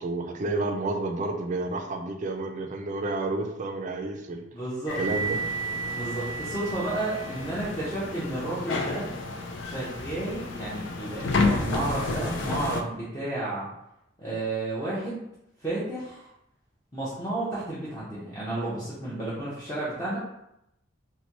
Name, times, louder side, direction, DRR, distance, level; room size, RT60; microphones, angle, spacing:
voice 1, 0.0-4.4 5.0-5.4, right 2 dB, 40° right, 4 dB, 0.4 m, -30 dB
voice 2, 4.5-5.0 5.9-9.1 9.6-13.7 14.2-15.3 15.6-16.3 16.9-20.2, right 2 dB, 15° left, -10 dB, 0.8 m, -32 dB
sound 1, 4.9-12.8, left 2 dB, 65° left, 0.4 m, -30 dB
4.0 x 2.2 x 2.9 m, 0.82 s
head